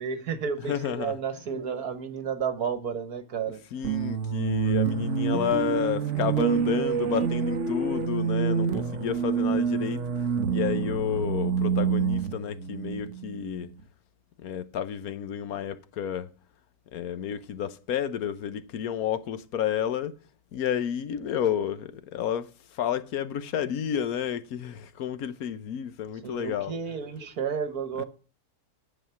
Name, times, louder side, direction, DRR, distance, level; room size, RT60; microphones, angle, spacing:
voice 1, 0.0-3.6 26.2-28.0, right 6 dB, 75° right, 1.7 m, -32 dB
voice 2, 0.7-1.1 3.7-13.7 14.4-16.3 16.9-20.2 20.5-26.7, left 9 dB, 70° left, 1.2 m, -31 dB
sound 1, 3.8-13.7, right 6 dB, 55° right, 1.0 m, -27 dB
10.0 x 7.4 x 5.7 m
omnidirectional pair, 1.6 m